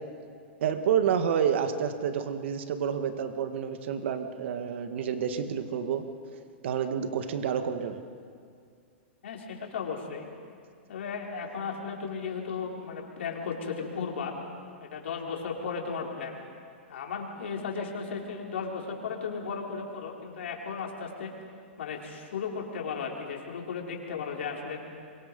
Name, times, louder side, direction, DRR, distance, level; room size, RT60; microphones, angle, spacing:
voice 1, 0.6-6.1 6.6-8.0, right 8 dB, 70° right, 7 dB, 1.9 m, -29 dB
voice 2, 9.2-10.3 10.9-14.3 14.8-16.4 16.9-21.3 21.8-24.8, left 5 dB, 75° left, -1 dB, 4.6 m, -35 dB
28.5 x 24.0 x 5.5 m, 2.2 s
hypercardioid pair, 135°, 6 cm